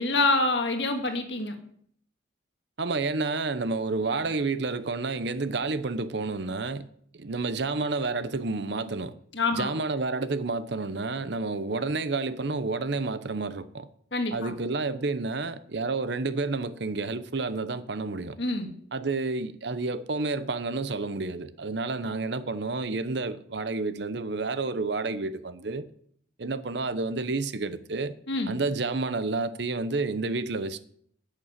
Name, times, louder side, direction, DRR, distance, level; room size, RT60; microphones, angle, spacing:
voice 1, 0.0-1.5 9.3-9.7 14.1-14.5 18.4-18.7 28.3-28.5, left 2 dB, 65° left, 1.8 m, -26 dB
voice 2, 2.8-6.9 7.1-9.1 9.5-13.9 14.3-18.4 18.9-25.9 26.4-28.1 28.5-30.8, right 3 dB, 60° right, 0.8 m, -30 dB
11.0 x 6.8 x 8.0 m
head